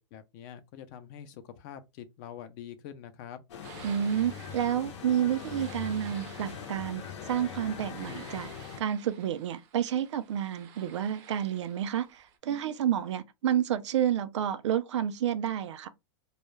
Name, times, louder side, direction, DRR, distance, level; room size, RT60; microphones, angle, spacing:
voice 1, 0.1-3.4, left 9 dB, 40° left, 0.5 m, -45 dB
sound 1, 3.5-8.8, left 7 dB, 80° left, 0.7 m, -42 dB
sound 2, 3.6-12.4, right 7 dB, 40° right, 0.6 m, -53 dB
voice 2, 3.8-8.5 8.8-15.9, right 10 dB, 85° right, 0.4 m, -30 dB
2.3 x 2.1 x 3.1 m
supercardioid pair, 145°, 15 cm